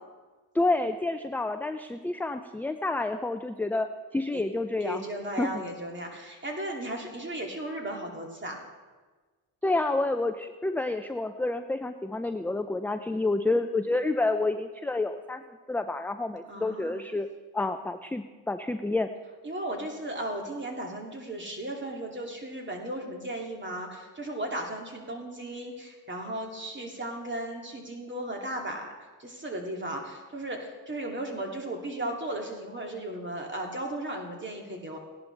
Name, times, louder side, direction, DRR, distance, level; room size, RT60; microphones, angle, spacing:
voice 1, 0.5-5.0 5.4-5.5 9.6-15.4 15.7-17.3 17.5-19.1, left 2 dB, 5° left, 8 dB, 0.4 m, -29 dB
voice 2, 4.8-8.6 16.5-17.0 19.4-28.9 29.2-35.0, right 1 dB, 25° right, 1 dB, 2.7 m, -36 dB
17.5 x 11.0 x 3.4 m, 1.4 s
supercardioid pair, 65°, 47 cm